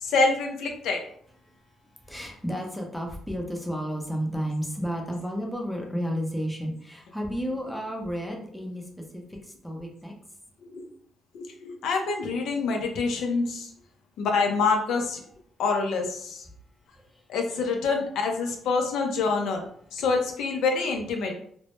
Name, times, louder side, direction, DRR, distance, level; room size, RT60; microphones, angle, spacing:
voice 1, 0.0-1.0 10.6-10.9 11.3-13.7 14.2-15.2 15.6-16.5 17.3-19.6 19.9-21.4, left 4 dB, 80° left, 3 dB, 0.4 m, -26 dB
voice 2, 2.0-8.9 9.1-10.1 17.0-17.2, equal, 5° left, 1 dB, 0.5 m, -32 dB
2.0 x 2.0 x 2.9 m, 0.63 s
cardioid pair, 90°, 0 cm